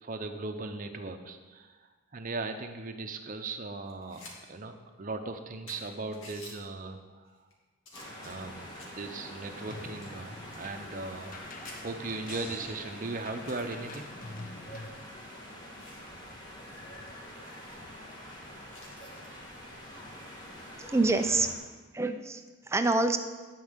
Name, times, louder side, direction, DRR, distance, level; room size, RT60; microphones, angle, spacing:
voice 1, 0.0-7.4 8.1-11.4 11.8-14.1, right 3 dB, 45° right, 6 dB, 0.8 m, -38 dB
sound 1, 3.9-4.4 4.7-4.8 5.3-5.4 5.7-6.6 7.3-7.5 7.8-9.0 9.6-11.4 11.6-11.8 12.5-12.6 12.9-13.0 13.5-14.0 14.8-16.1 16.5-16.6 16.9-17.0 17.4-17.8 18.7-19.3 21.0-21.2, left 2 dB, 75° left, 2.3 m, -52 dB
sound 2, 7.9-21.6, equal, 20° left, 2.0 m, -46 dB
sound 3, 9.7-14.9, left 3 dB, 45° left, 0.9 m, -46 dB
voice 2, 20.9-21.5 21.9-23.2, right 3 dB, 15° right, 7 dB, 0.6 m, -26 dB
11.0 x 4.8 x 8.1 m, 1.3 s
head